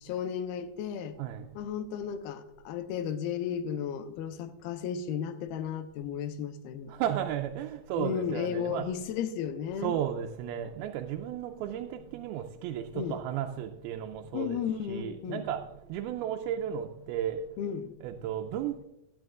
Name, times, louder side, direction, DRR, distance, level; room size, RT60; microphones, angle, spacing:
voice 1, 0.0-1.2 1.6-6.9 8.0-9.9 12.9-13.2 14.3-15.5 17.6-18.0, left 8 dB, 85° left, 10 dB, 2.6 m, -34 dB
voice 2, 6.9-8.9 9.8-14.6 14.9-15.6 15.9-17.4 18.0-18.8, right 10 dB, 90° right, 4 dB, 2.5 m, -34 dB
15.5 x 10.0 x 2.4 m, 0.85 s
omnidirectional pair, 4.3 m